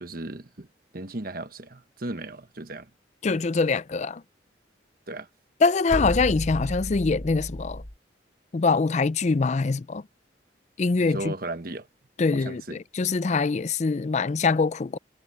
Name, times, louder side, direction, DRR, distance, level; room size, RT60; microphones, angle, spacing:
voice 1, 0.0-0.7 0.9-2.9 5.1-5.3 11.0-11.9 12.3-12.8, right 2 dB, 50° right, 1.3 m, -36 dB
voice 2, 3.2-4.2 5.6-7.8 8.5-10.0 10.8-11.3 12.2-15.0, left 4 dB, 40° left, 0.4 m, -24 dB
sound 1, 5.9-8.0, left 1 dB, 60° left, 2.7 m, -32 dB
head